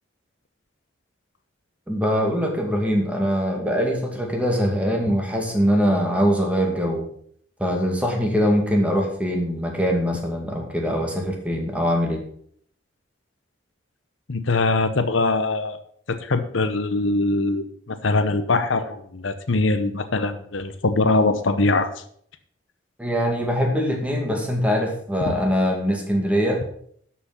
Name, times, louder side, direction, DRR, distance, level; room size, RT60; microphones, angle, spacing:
voice 1, 1.9-7.0 7.6-12.2 23.0-26.6, equal, 5° right, 1 dB, 2.1 m, -22 dB
voice 2, 14.3-15.8 16.1-21.9 25.2-25.3, left 3 dB, 75° left, 10 dB, 0.9 m, -22 dB
12.5 x 6.1 x 5.8 m, 0.63 s
head